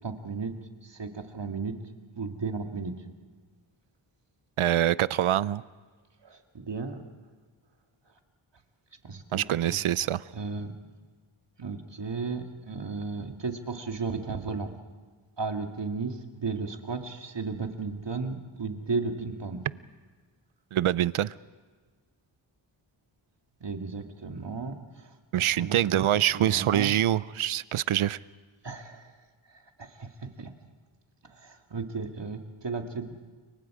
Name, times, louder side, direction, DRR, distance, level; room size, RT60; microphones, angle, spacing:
voice 1, 0.0-0.5 0.8-1.8 2.2-3.0 6.2-7.0 9.0-9.8 10.3-10.7 11.6-14.7 15.4-19.7 23.6-26.0 26.3-26.9 28.6-29.1 29.8-30.5 31.2-33.1, right 4 dB, 60° right, 4 dB, 2.2 m, -34 dB
voice 2, 4.6-5.6 9.3-10.2 20.7-21.3 25.3-28.2, right 12 dB, 85° right, 19 dB, 0.6 m, -25 dB
29.0 x 24.0 x 4.9 m, 1.5 s
wide cardioid pair, 75°, 48 cm